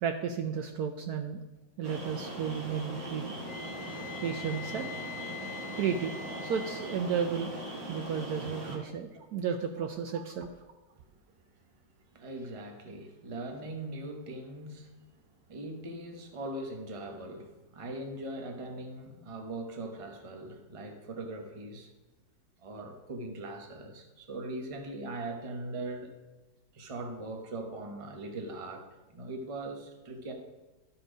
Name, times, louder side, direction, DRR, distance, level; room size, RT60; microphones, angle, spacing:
voice 1, 0.0-1.4 1.8-3.3 4.2-4.9 5.8-6.1 6.4-7.5 7.9-10.5, right 7 dB, 70° right, 6 dB, 1.0 m, -33 dB
sound 1, 1.8-8.8, right 1 dB, 40° right, 2.2 m, -40 dB
Wind instrument woodwind instrument, 3.5-7.0, left 7 dB, 60° left, 1.1 m, -44 dB
voice 2, 12.1-21.9 22.6-26.1 26.7-30.3, right 2 dB, 25° right, 4 dB, 0.7 m, -40 dB
12.5 x 4.4 x 5.0 m, 1.1 s
omnidirectional pair, 2.0 m